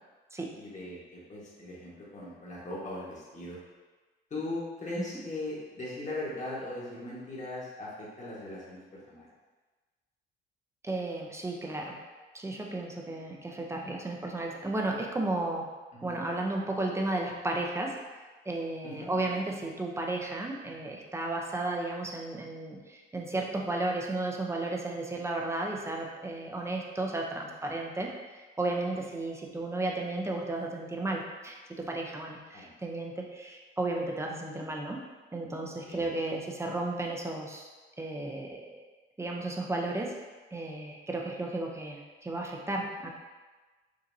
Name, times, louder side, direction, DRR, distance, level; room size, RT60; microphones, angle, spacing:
voice 1, 0.5-3.6 4.3-9.3 16.0-16.2 18.8-19.4 28.0-28.1 32.5-32.7 35.8-36.1, left 2 dB, 35° left, -6 dB, 1.5 m, -39 dB
voice 2, 10.8-12.0 12.3-15.7 16.0-17.9 18.5-35.0 35.3-37.7 38.0-38.8 39.2-40.1 40.5-43.1, right 2 dB, 15° right, 0 dB, 0.6 m, -34 dB
5.3 x 2.8 x 2.7 m, 1.3 s
cardioid pair, 90°, 20 cm